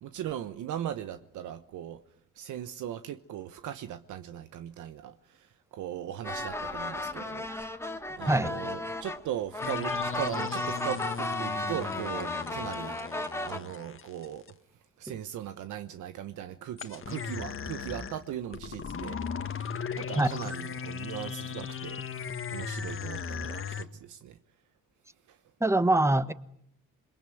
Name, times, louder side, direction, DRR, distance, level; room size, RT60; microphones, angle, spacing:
voice 1, 0.0-2.0 2.3-7.5 8.2-13.0 13.4-14.6 15.0-22.0 22.5-24.4 25.3-25.4, right 11 dB, 80° right, 1.2 m, -39 dB
sound 1, 6.2-13.6, left 2 dB, 10° left, 1.9 m, -34 dB
sound 2, 9.6-14.5 16.8-23.8, left 6 dB, 45° left, 1.8 m, -37 dB
voice 2, 25.6-26.3, right 2 dB, 10° right, 1.3 m, -23 dB
27.5 x 22.5 x 9.3 m
cardioid pair, 90°, 30 cm